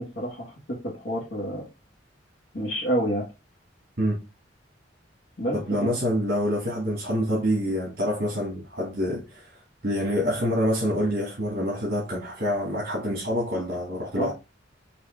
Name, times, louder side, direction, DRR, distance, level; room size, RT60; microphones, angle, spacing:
voice 1, 0.0-1.7 2.5-3.3 5.4-5.9 14.2-14.3, equal, 65° left, 1.5 m, -29 dB
voice 2, 5.5-9.5 9.8-14.3, equal, 55° right, 1.8 m, -26 dB
5.4 x 2.8 x 3.3 m
head